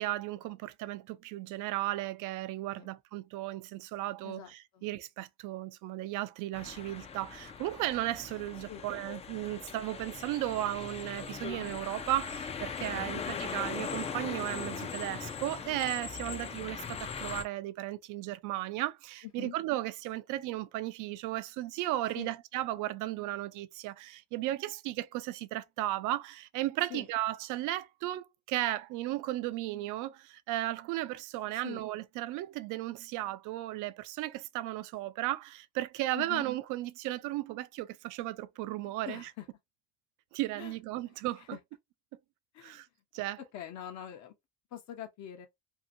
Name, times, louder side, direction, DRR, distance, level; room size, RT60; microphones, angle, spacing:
voice 1, 0.0-39.3 40.3-41.6 42.6-42.9 43.1-43.4, right 15 dB, 70° right, 0.5 m, -35 dB
voice 2, 4.2-4.8 8.7-8.8 13.1-13.2 16.3-16.6 19.4-19.5 22.2-22.3 26.9-27.1 31.5-31.9 36.1-36.5 38.8-39.4 40.6-40.7 41.4-41.5 42.5-42.8 43.5-44.3 44.7-45.5, left 11 dB, 55° left, 0.7 m, -44 dB
sound 1, 6.5-17.4, left 6 dB, 20° left, 0.3 m, -40 dB
2.7 x 2.6 x 2.5 m
cardioid pair, 135°, 32 cm